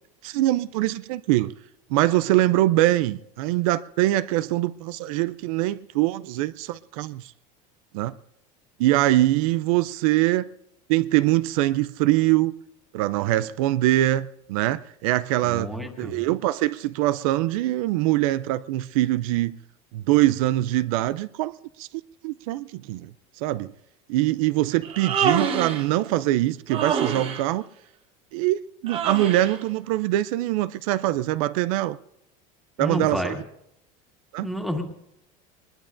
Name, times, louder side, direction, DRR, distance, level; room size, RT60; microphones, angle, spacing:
voice 1, 0.2-1.5 1.9-7.3 7.9-8.2 8.8-10.5 10.9-12.5 12.9-15.7 16.0-19.6 19.9-21.5 21.8-21.9 22.2-23.1 23.4-23.7 24.1-27.7 28.3-32.0 32.8-33.4 34.3-34.5, right 15 dB, 85° right, 0.5 m, -23 dB
voice 2, 15.4-16.1 32.8-33.4 34.4-34.8, equal, ahead, 1.8 m, -29 dB
Human voice, 24.8-25.9 26.7-27.4 28.9-29.6, right 7 dB, 35° right, 1.1 m, -25 dB
22.5 x 21.0 x 2.6 m
cardioid pair, 150°, 17 cm